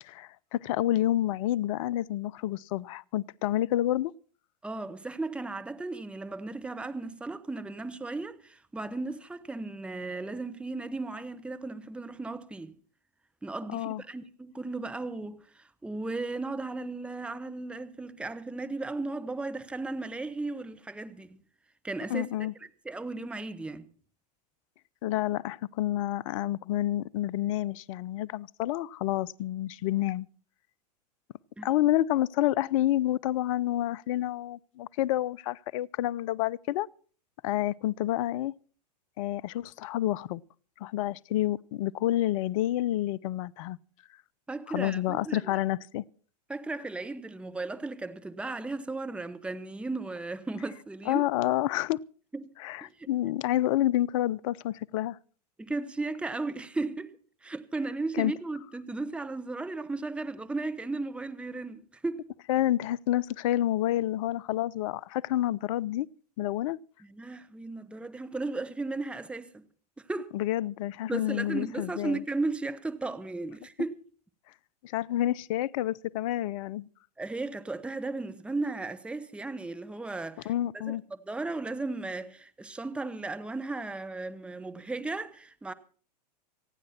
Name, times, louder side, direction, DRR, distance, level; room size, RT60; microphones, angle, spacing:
voice 1, 0.0-4.1 13.7-14.0 22.1-22.5 25.0-30.3 31.6-36.9 37.4-38.5 39.2-40.4 40.8-43.8 44.7-46.0 51.1-52.1 52.6-55.2 58.1-58.3 62.5-66.1 66.4-66.8 70.3-72.2 74.8-76.9 80.5-81.0, left 14 dB, 50° left, 0.6 m, -29 dB
voice 2, 4.6-12.7 13.4-21.4 21.8-22.3 22.8-23.9 31.6-31.7 44.5-45.5 46.5-51.2 52.3-52.5 52.8-53.1 55.6-62.3 67.0-69.6 70.0-70.4 71.1-74.0 77.2-85.7, right 3 dB, 5° right, 1.0 m, -35 dB
26.0 x 9.7 x 4.3 m
hypercardioid pair, 105°, 21 cm